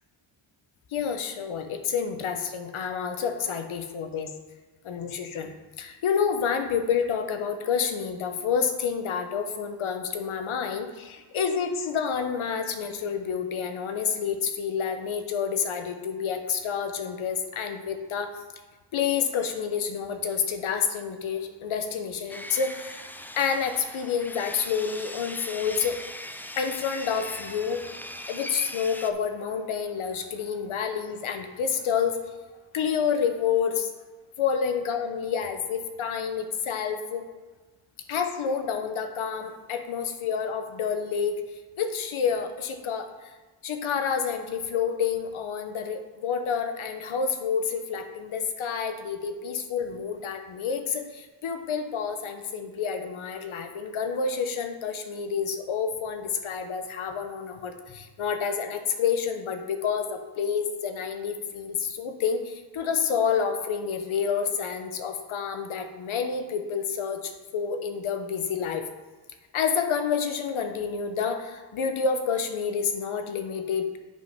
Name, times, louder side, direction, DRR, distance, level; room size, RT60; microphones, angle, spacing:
voice 1, 0.9-4.3 4.8-5.5 5.8-18.3 18.9-23.0 23.4-26.0 26.6-27.8 28.3-32.2 32.7-33.9 34.4-37.2 38.1-41.4 41.8-43.1 43.6-68.8 69.5-74.0, left 6 dB, 90° left, 7 dB, 1.0 m, -29 dB
Sawing, 22.3-29.1, left 1 dB, 5° left, 0.3 m, -40 dB
8.8 x 5.3 x 5.7 m, 1.3 s
wide cardioid pair, 115°, 47 cm